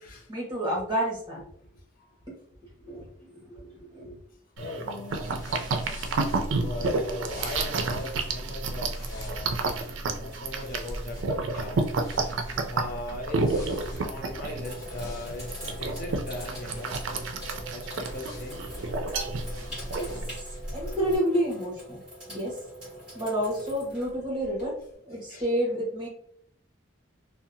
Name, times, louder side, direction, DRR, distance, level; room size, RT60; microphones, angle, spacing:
voice 1, 0.3-1.4 2.3-2.4 2.6-4.2 19.9-20.1 20.7-22.0 22.3-22.6 23.1-24.7 25.0-26.1, equal, 20° right, -4 dB, 1.0 m, -30 dB
voice 2, 4.6-5.4 6.5-9.6 10.2-11.9 12.7-17.3 17.7-18.6 25.3-25.4, left 2 dB, 45° left, 1 dB, 0.4 m, -39 dB
sound 1, 4.6-20.4, right 3 dB, 75° right, 0.4 m, -31 dB
sound 2, 5.1-21.2, equal, 20° left, 0.8 m, -40 dB
Sink (filling or washing), 14.1-24.9, equal, 5° right, 1.3 m, -43 dB
2.7 x 2.1 x 2.6 m, 0.66 s
head